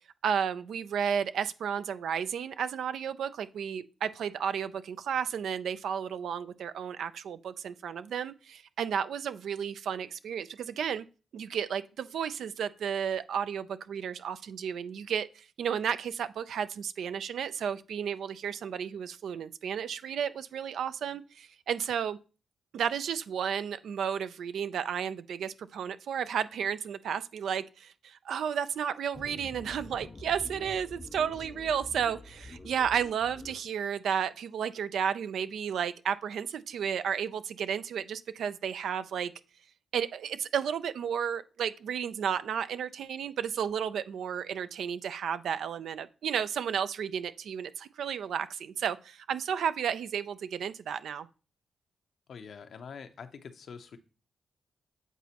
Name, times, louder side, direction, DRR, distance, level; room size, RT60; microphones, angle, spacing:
voice 1, 0.2-11.0 11.3-22.2 22.7-39.3 39.9-51.3, right 8 dB, 80° right, 0.4 m, -33 dB
sound 1, 29.1-33.6, left 2 dB, 30° left, 0.6 m, -46 dB
voice 2, 52.3-54.0, left 6 dB, 70° left, 0.7 m, -45 dB
8.1 x 4.0 x 2.9 m
cardioid pair, 65°, 0 cm